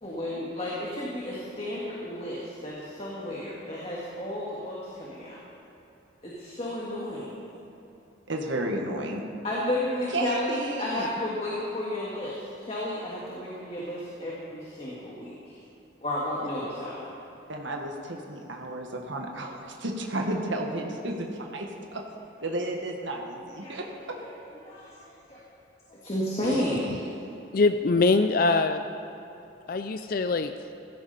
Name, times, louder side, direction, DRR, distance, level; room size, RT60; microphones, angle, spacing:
voice 1, 0.0-5.4 6.2-7.4 9.4-15.6 16.0-17.0 23.6-23.8 24.2-24.3 24.6-25.4 26.1-27.0, left 1 dB, 30° left, -6 dB, 2.0 m, -32 dB
voice 2, 8.3-9.2 10.1-11.1 17.5-21.7 21.9-22.0 22.4-23.8, right 1 dB, 75° right, 1 dB, 1.6 m, -32 dB
voice 3, 27.5-28.8 29.7-30.5, left 3 dB, 45° left, 8 dB, 0.4 m, -23 dB
16.5 x 14.5 x 4.3 m, 2.9 s
head